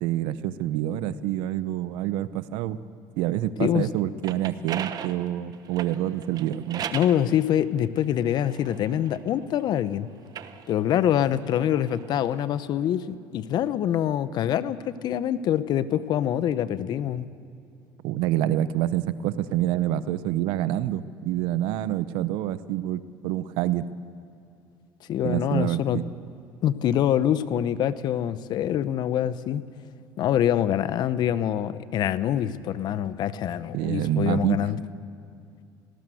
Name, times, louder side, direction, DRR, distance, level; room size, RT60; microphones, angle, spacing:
voice 1, 0.0-2.8 3.2-6.8 18.0-23.9 25.2-26.0 33.7-34.7, right 13 dB, 75° right, 15 dB, 0.8 m, -27 dB
sound 1, 4.0-7.2 8.0-9.7 10.2-12.5, right 9 dB, 50° right, 1.0 m, -38 dB
voice 2, 6.9-10.1 10.7-17.3 25.1-26.0 26.6-29.6 30.2-34.8, left 10 dB, 55° left, 15 dB, 0.9 m, -25 dB
19.5 x 18.0 x 7.8 m, 2.5 s
supercardioid pair, 95°, 9 cm